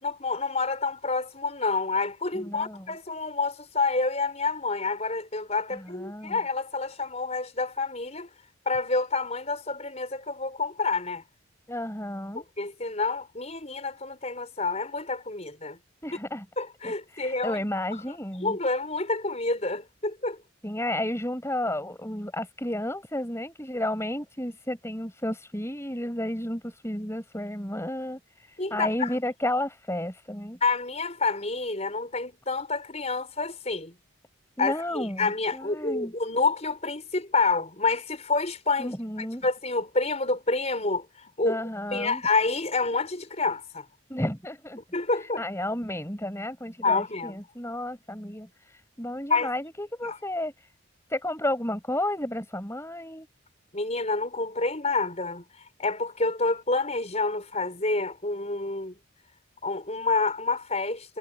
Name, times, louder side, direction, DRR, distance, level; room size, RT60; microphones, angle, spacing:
voice 1, 0.0-8.3 8.7-11.2 12.3-15.8 16.6-17.6 18.1-18.2 18.4-20.4 28.6-29.1 30.6-34.0 34.6-41.6 41.9-43.9 44.9-45.4 46.8-47.4 49.3-49.5 50.0-50.2 53.7-55.4 55.8-59.0 59.6-61.2, left 3 dB, 30° left, 5.3 m, -28 dB
voice 2, 2.3-2.9 5.7-6.4 11.7-12.5 16.0-16.5 16.8-18.6 20.6-30.6 34.6-36.1 38.8-39.5 41.4-42.2 44.1-44.8 45.1-50.7 51.1-53.3, left 1 dB, 10° left, 6.3 m, -32 dB
head